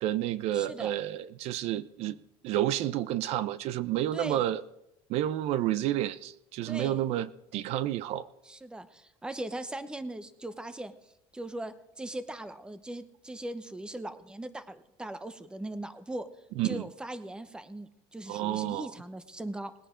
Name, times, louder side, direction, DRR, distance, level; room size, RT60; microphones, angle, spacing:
voice 1, 0.0-2.2 2.4-4.6 5.1-8.3 16.6-16.8 18.3-18.9, right 13 dB, 65° right, 16 dB, 0.6 m, -30 dB
voice 2, 0.5-0.9 4.1-4.5 6.7-7.0 8.5-10.9 11.3-16.3 16.6-19.7, right 1 dB, 5° right, 12 dB, 0.8 m, -39 dB
20.0 x 9.9 x 3.8 m, 0.83 s
cardioid pair, 130°, 12 cm